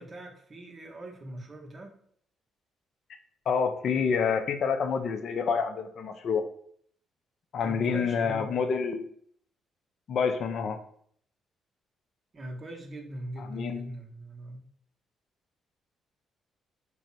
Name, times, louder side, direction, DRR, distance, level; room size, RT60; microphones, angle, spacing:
voice 1, 0.0-2.0 7.6-8.6 12.3-14.6, right 1 dB, 40° right, 2 dB, 0.7 m, -41 dB
voice 2, 3.5-6.4 7.5-9.1 10.1-10.8 13.4-13.9, left 6 dB, 60° left, 8 dB, 0.4 m, -28 dB
3.3 x 2.0 x 4.1 m, 0.62 s
hypercardioid pair, 45°, 0 cm